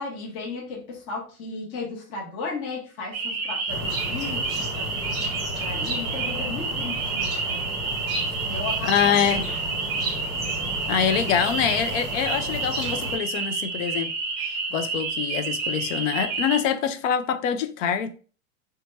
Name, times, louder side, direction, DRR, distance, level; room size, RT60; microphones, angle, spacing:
voice 1, 0.0-7.6 8.4-9.5, left 3 dB, 40° left, 1.0 m, -35 dB
sound 1, 3.1-16.6, right 4 dB, 35° right, 0.6 m, -29 dB
sound 2, 3.7-13.2, equal, ahead, 1.2 m, -33 dB
voice 2, 8.9-9.4 10.9-14.1 14.4-18.2, left 8 dB, 65° left, 0.5 m, -25 dB
2.7 x 2.2 x 3.1 m
supercardioid pair, 135°, 42 cm